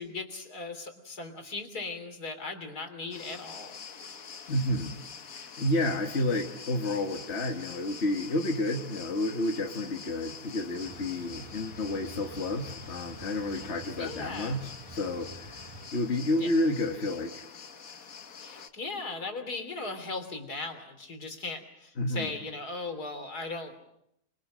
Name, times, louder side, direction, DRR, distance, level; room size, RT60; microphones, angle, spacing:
voice 1, 0.0-3.8 14.0-14.6 16.4-16.5 18.4-23.7, left 3 dB, 80° left, 6 dB, 3.8 m, -38 dB
sound 1, 3.1-18.7, left 6 dB, 65° left, 1.7 m, -46 dB
voice 2, 4.5-4.9 5.3-17.4 22.0-22.3, left 1 dB, 45° left, 2 dB, 2.0 m, -30 dB
sound 2, 10.8-15.9, right 2 dB, 25° right, 1.2 m, -48 dB
28.0 x 23.0 x 6.4 m, 0.78 s
omnidirectional pair, 1.6 m